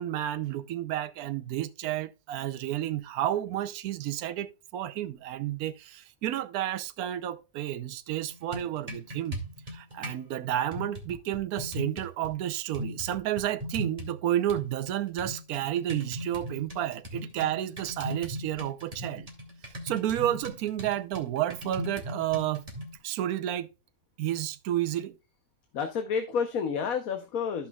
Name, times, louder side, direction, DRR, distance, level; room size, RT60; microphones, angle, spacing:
voice 1, 0.0-9.4 9.7-19.3 19.8-22.7 23.0-23.7 24.2-25.2, right 12 dB, 80° right, 1.1 m, -31 dB
sound 1, 8.3-10.2 10.7-12.3 12.7-14.2 14.5-23.0, left 1 dB, 25° right, 2.2 m, -39 dB
voice 2, 25.7-27.7, left 6 dB, 70° left, 1.3 m, -30 dB
14.0 x 5.9 x 2.3 m
omnidirectional pair, 1.6 m